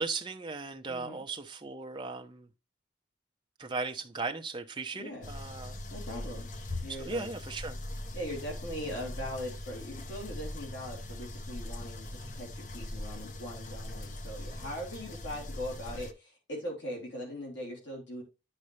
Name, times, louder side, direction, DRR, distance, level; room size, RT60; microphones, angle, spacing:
voice 1, 0.0-2.5 3.6-5.8 7.0-7.8, right 3 dB, 25° right, 0.8 m, -37 dB
voice 2, 0.9-1.2 4.9-5.3 5.9-7.3 8.1-18.2, equal, 70° left, 3.5 m, -40 dB
sound 1, 5.2-16.1, left 1 dB, 40° left, 0.8 m, -41 dB
9.8 x 5.3 x 3.2 m
head